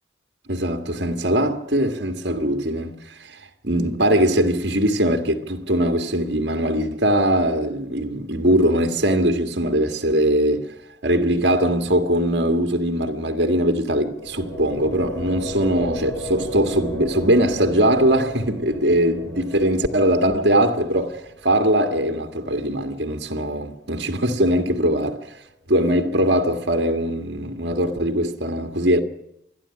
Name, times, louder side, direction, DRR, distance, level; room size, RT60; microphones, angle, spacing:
voice 1, 0.5-10.7 11.0-25.3 25.7-29.0, right 1 dB, 65° right, 1.9 m, -21 dB
sound 1, 14.0-23.9, equal, 20° left, 4.7 m, -36 dB
27.5 x 11.0 x 9.8 m
head